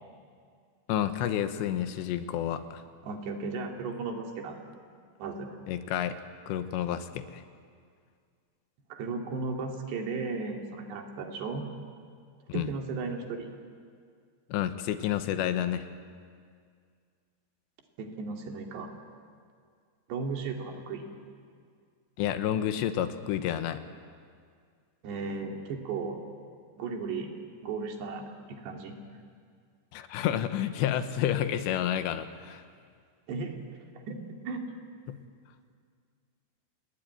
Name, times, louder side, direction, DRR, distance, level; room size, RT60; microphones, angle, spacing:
voice 1, 0.9-2.8 5.7-6.2 6.5-7.4 12.5-12.7 14.5-15.9 22.2-23.8 29.9-32.6 35.1-35.2, left 10 dB, 80° left, 10 dB, 3.3 m, -30 dB
voice 2, 3.0-4.6 5.2-5.6 8.9-11.7 12.5-13.5 18.0-18.9 20.1-21.0 25.0-26.2 26.8-27.3 27.6-29.0 33.3-33.5 33.9-34.2 34.5-34.6, right 4 dB, 70° right, 3 dB, 4.3 m, -35 dB
28.0 x 20.5 x 9.4 m, 2.1 s
omnidirectional pair, 5.2 m